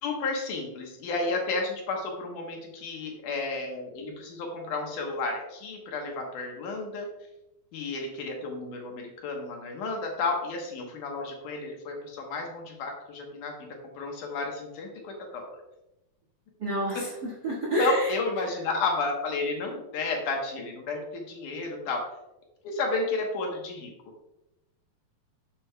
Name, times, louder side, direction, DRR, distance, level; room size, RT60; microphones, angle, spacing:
voice 1, 0.0-7.1 7.7-15.5 17.8-22.0 22.6-23.9, left 3 dB, 70° left, 1 dB, 2.6 m, -32 dB
voice 2, 16.6-18.1, right 2 dB, 40° right, -5 dB, 1.7 m, -28 dB
10.5 x 7.2 x 2.2 m, 0.92 s
omnidirectional pair, 4.0 m